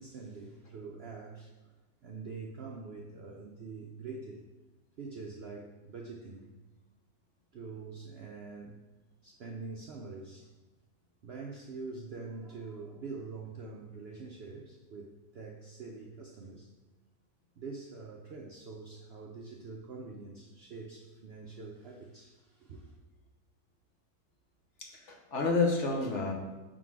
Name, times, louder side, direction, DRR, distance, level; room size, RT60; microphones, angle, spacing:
voice 1, 0.0-1.5 2.0-4.4 5.0-6.5 7.5-8.8 9.2-10.5 11.2-16.7 17.6-22.9, right 4 dB, 65° right, 0 dB, 0.6 m, -45 dB
voice 2, 24.8-26.3, left 3 dB, 55° left, 0 dB, 1.0 m, -29 dB
5.3 x 3.8 x 4.7 m, 1.2 s
omnidirectional pair, 1.6 m